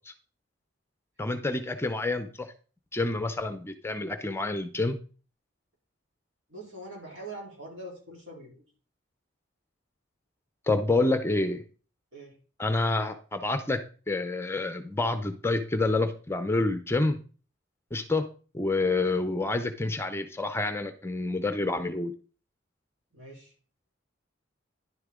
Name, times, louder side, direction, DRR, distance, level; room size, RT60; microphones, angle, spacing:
voice 1, 1.2-2.5 2.9-5.0 10.7-11.6 12.6-13.8 14.1-17.2 17.9-18.3 18.5-22.1, left 2 dB, 15° left, 9 dB, 0.6 m, -28 dB
voice 2, 6.5-8.6 12.1-12.4 23.1-23.5, right 1 dB, 75° right, -2 dB, 3.9 m, -43 dB
11.0 x 6.6 x 3.7 m, 0.39 s
head